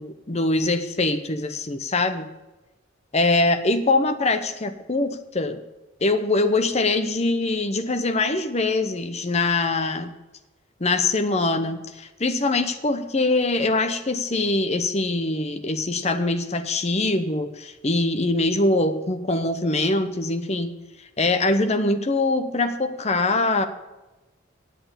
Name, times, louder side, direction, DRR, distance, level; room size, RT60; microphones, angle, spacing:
voice 1, 0.0-2.3 3.1-5.6 6.0-10.1 10.8-20.7 21.2-23.7, left 2 dB, 35° left, 8 dB, 0.9 m, -23 dB
9.0 x 7.8 x 8.9 m, 1.1 s
head